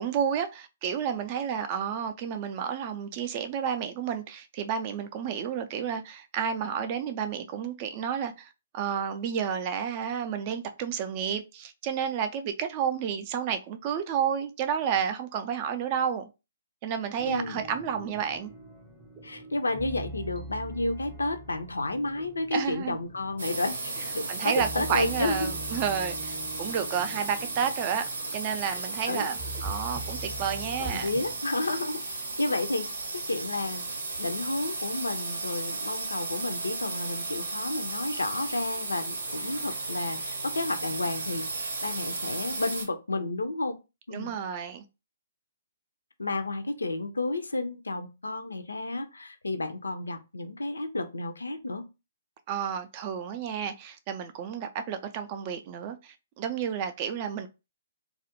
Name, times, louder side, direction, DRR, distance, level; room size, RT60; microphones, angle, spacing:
voice 1, 0.0-16.3 16.8-18.5 22.5-23.0 24.3-31.1 44.1-44.8 52.5-57.5, right 8 dB, 35° right, 0.3 m, -31 dB
voice 2, 17.2-17.6 19.2-25.5 28.7-28.8 29.1-29.3 30.8-33.8 34.2-43.8 44.1-44.4 46.2-51.8, left 2 dB, 75° left, 0.4 m, -31 dB
sound 1, 17.2-31.4, right 2 dB, 5° right, 0.7 m, -43 dB
sound 2, 23.4-42.9, right 3 dB, 70° right, 0.7 m, -35 dB
2.3 x 2.1 x 2.8 m
figure-of-eight pair, 125°, 0 cm